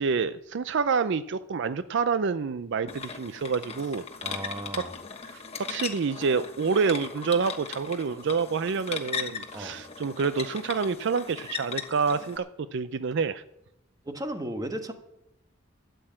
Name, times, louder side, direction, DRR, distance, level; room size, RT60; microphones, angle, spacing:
voice 1, 0.0-4.0 4.7-4.8 5.3-13.4, right 5 dB, 60° right, 13 dB, 0.4 m, -28 dB
sound 1, 2.9-12.4, left 6 dB, 30° left, 1.2 m, -38 dB
voice 2, 4.2-4.9 9.5-9.8 14.0-14.9, right 1 dB, 20° right, 6 dB, 1.2 m, -35 dB
13.0 x 7.9 x 8.7 m, 0.83 s
head